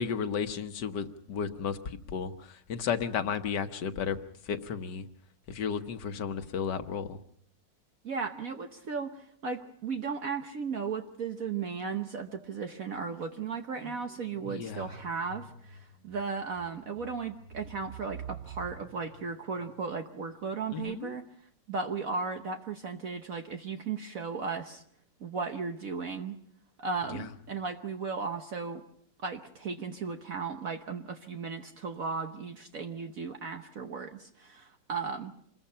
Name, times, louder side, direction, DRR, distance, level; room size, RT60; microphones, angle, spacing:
voice 1, 0.0-4.2 4.4-5.1 5.5-7.2 14.5-14.9 20.7-21.1 27.1-27.3, left 6 dB, 70° left, 8 dB, 1.7 m, -33 dB
voice 2, 8.0-21.2 21.7-24.8 25.2-26.4 26.8-28.8 29.2-35.3, right 5 dB, 55° right, 5 dB, 1.4 m, -36 dB
sound 1, 12.1-20.1, right 6 dB, 70° right, 2.0 m, -49 dB
26.5 x 21.0 x 5.6 m, 0.66 s
omnidirectional pair, 1.9 m